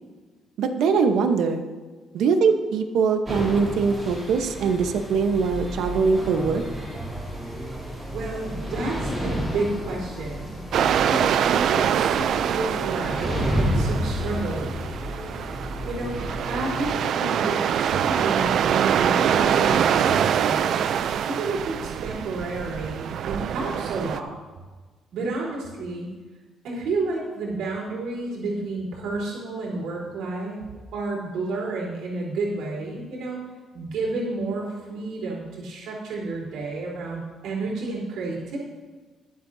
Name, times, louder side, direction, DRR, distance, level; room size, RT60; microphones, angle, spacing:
voice 1, 0.6-1.6 2.1-6.6, right 5 dB, 70° right, 6 dB, 1.0 m, -22 dB
sound 1, 3.3-16.9, equal, 15° right, 3.2 m, -31 dB
voice 2, 8.1-10.6 11.0-14.8 15.9-20.9 21.3-24.3 25.1-26.1 26.6-30.7 30.9-33.4 33.7-38.6, right 3 dB, 85° right, -4 dB, 3.7 m, -30 dB
sound 2, 10.7-24.2, right 9 dB, 55° right, 0.4 m, -24 dB
21.5 x 7.7 x 2.7 m, 1.3 s
cardioid pair, 175°, 0 cm